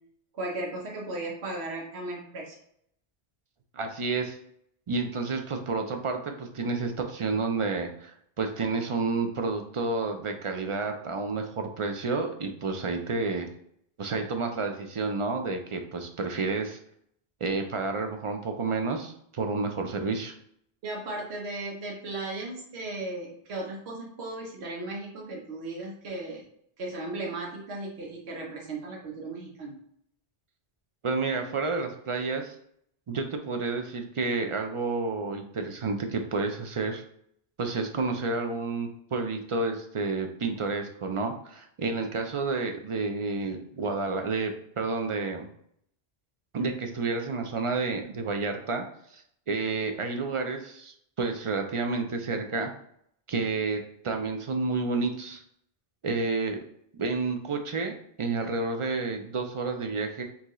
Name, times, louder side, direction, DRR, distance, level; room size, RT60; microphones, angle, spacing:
voice 1, 0.3-2.6 20.8-26.4 26.8-29.8, right 2 dB, 85° right, -1 dB, 1.1 m, -36 dB
voice 2, 3.7-4.4 4.9-13.5 14.0-16.8 17.4-20.3 31.0-32.6 33.1-37.0 37.6-45.5 46.5-48.8 49.1-52.7 53.3-55.4 56.0-56.6 56.9-60.2, right 3 dB, 50° right, 5 dB, 0.3 m, -30 dB
4.4 x 2.8 x 3.0 m, 0.70 s
omnidirectional pair, 1.1 m